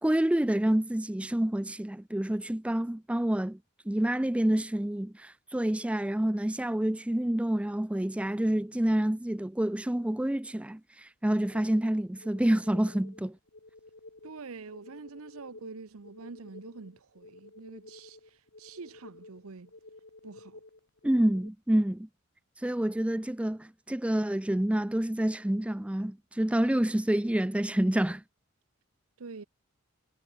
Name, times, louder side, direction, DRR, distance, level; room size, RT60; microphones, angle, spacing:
voice 1, 0.0-3.6 3.9-13.4 21.0-22.1 22.6-28.2, right 1 dB, 5° right, 0.3 m, -28 dB
sound 1, 11.5-21.5, left 2 dB, 60° left, 2.5 m, -52 dB
voice 2, 14.2-19.7 20.2-20.6 29.2-29.4, right 4 dB, 80° right, 0.8 m, -46 dB
head